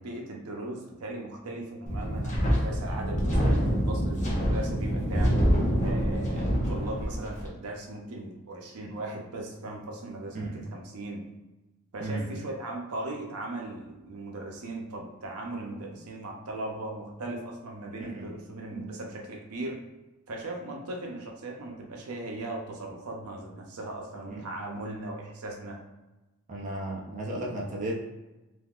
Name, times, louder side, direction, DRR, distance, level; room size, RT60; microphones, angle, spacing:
voice 1, 0.0-5.5 5.8-11.3 11.9-19.8 20.3-25.8, right 2 dB, 75° right, 0 dB, 0.6 m, -38 dB
Wind, 1.9-7.5, equal, 35° left, 0.7 m, -26 dB
voice 2, 10.3-10.6 12.0-12.4 18.0-18.3 18.7-18.8 24.3-24.4 26.5-28.0, right 1 dB, 35° right, -3 dB, 0.5 m, -35 dB
3.5 x 2.6 x 2.4 m, 1.1 s
head